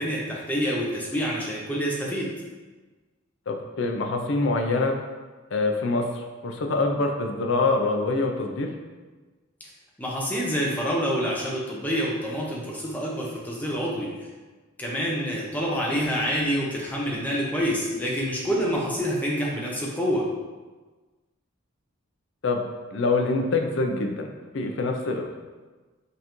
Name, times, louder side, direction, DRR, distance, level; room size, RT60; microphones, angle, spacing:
voice 1, 0.0-2.3 10.0-14.3 14.8-20.2, equal, 10° left, -4 dB, 0.6 m, -27 dB
voice 2, 3.5-5.0 5.5-8.7 22.4-22.7 22.9-25.4, left 3 dB, 65° left, 3 dB, 0.5 m, -25 dB
5.3 x 2.6 x 3.0 m, 1.3 s
head